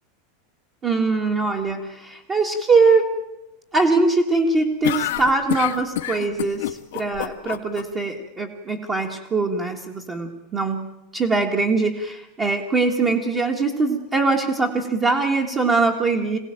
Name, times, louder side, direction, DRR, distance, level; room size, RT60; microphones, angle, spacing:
voice 1, 0.8-3.1 3.7-10.9 11.1-16.4, right 3 dB, 15° right, 1 dB, 1.7 m, -22 dB
sound 1, 4.8-7.8, left 14 dB, 80° left, 1.3 m, -27 dB
26.5 x 17.5 x 9.0 m, 0.94 s
supercardioid pair, 175°, 0 cm